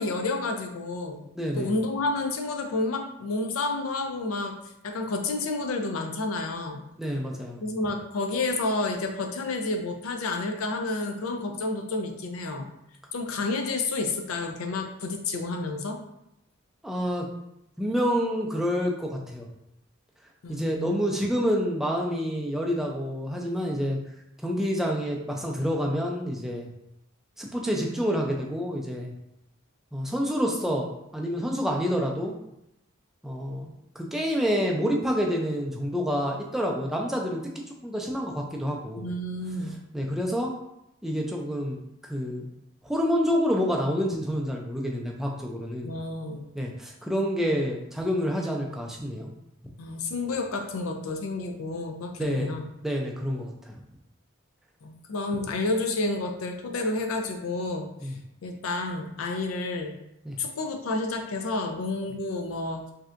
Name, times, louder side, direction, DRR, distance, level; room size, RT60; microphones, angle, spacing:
voice 1, 0.0-1.2 1.5-4.6 4.8-6.9 7.6-12.7 13.1-16.0 20.4-20.9 39.0-39.7 45.8-46.4 49.8-52.7 54.8-58.1 58.4-60.0 60.4-62.9, left 2 dB, 85° left, 4 dB, 0.5 m, -30 dB
voice 2, 1.4-1.7 7.0-7.6 16.8-17.3 17.8-19.5 20.5-24.0 24.4-26.7 27.4-29.1 29.9-32.4 33.2-37.4 37.8-39.0 39.9-40.5 41.0-42.5 42.8-45.9 46.5-49.3 52.2-53.8 58.0-58.1 60.2-60.4, equal, ahead, -1 dB, 0.3 m, -28 dB
3.2 x 2.7 x 2.5 m, 0.84 s
head